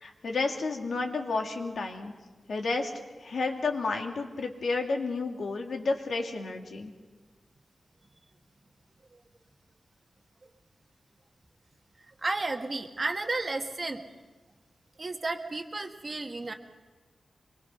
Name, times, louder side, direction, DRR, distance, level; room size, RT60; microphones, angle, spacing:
voice 1, 0.0-2.1 2.5-2.9 3.2-6.9, left 3 dB, 70° left, 2 dB, 2.4 m, -31 dB
voice 2, 12.2-14.0 15.0-16.5, right 3 dB, 35° right, 4 dB, 1.6 m, -32 dB
24.5 x 22.5 x 5.6 m, 1.3 s
wide cardioid pair, 130°, 0 cm